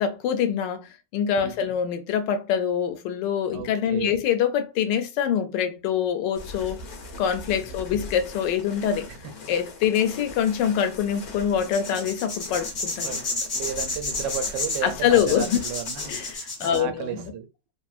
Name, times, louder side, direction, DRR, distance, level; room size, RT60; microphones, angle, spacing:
voice 1, 0.0-6.8 7.2-9.1 9.5-13.2 14.8-15.6 16.1-17.3, left 8 dB, 85° left, 1.3 m, -25 dB
voice 2, 1.4-1.7 3.5-4.2 7.5-7.8 9.1-9.3 13.0-17.5, right 8 dB, 75° right, 1.2 m, -34 dB
sound 1, 6.3-16.4, left 2 dB, 65° left, 1.2 m, -41 dB
sound 2, 11.6-16.8, left 3 dB, 40° left, 0.7 m, -31 dB
3.1 x 2.5 x 2.3 m
omnidirectional pair, 1.9 m